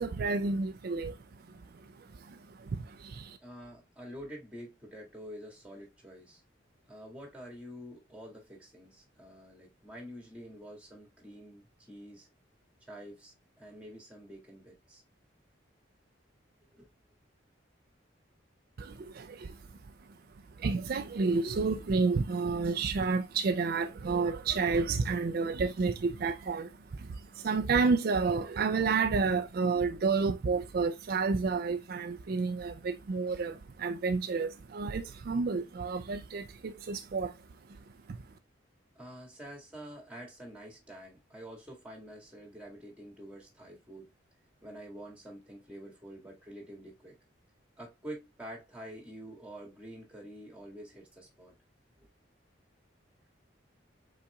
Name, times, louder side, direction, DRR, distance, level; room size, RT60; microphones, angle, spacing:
voice 1, 0.0-3.4 18.8-19.9 20.5-37.4 37.7-38.2, right 4 dB, 50° right, 0.4 m, -31 dB
voice 2, 3.4-6.4 6.9-12.3 12.9-15.0 16.7-16.9 39.0-44.1 44.6-47.2 47.8-51.5 52.0-52.1, equal, 5° right, 1.8 m, -47 dB
5.6 x 4.0 x 2.3 m
head